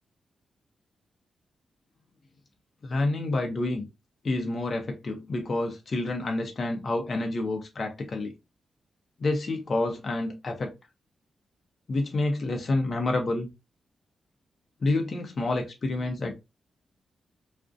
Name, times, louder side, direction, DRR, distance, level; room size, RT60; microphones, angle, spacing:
voice 1, 2.8-3.9 4.2-8.3 9.2-10.7 11.9-13.5 14.8-16.4, left 2 dB, 50° left, 0.6 m, -28 dB
2.4 x 2.1 x 2.5 m
cardioid pair, 75°, 0 cm